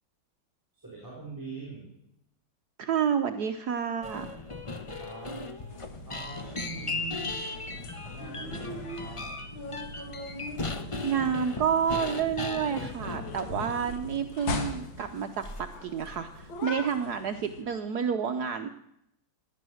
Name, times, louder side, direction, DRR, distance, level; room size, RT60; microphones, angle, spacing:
voice 1, 0.7-1.9 4.9-5.4 6.1-7.4 8.1-9.3, right 4 dB, 10° right, -4 dB, 4.8 m, -43 dB
voice 2, 2.8-4.4 11.0-18.7, right 7 dB, 65° right, 7 dB, 1.2 m, -29 dB
sound 1, 4.0-14.1 14.5-14.6 15.4-15.8 16.0-16.5, left 3 dB, 25° left, 0.8 m, -37 dB
sound 2, 5.7-17.6, left 2 dB, 85° left, 2.5 m, -41 dB
17.0 x 11.5 x 6.3 m, 0.78 s
omnidirectional pair, 2.1 m